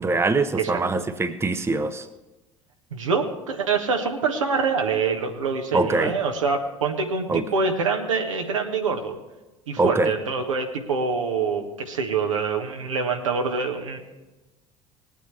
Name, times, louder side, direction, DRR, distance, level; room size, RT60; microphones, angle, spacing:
voice 1, 0.0-2.1 5.7-6.1 7.3-7.4 9.8-10.1, right 3 dB, 15° right, 10 dB, 0.9 m, -23 dB
voice 2, 2.9-9.2 9.7-14.0, right 5 dB, 75° right, 3 dB, 1.4 m, -25 dB
20.5 x 9.2 x 3.4 m, 1.1 s
figure-of-eight pair, 60°, 17 cm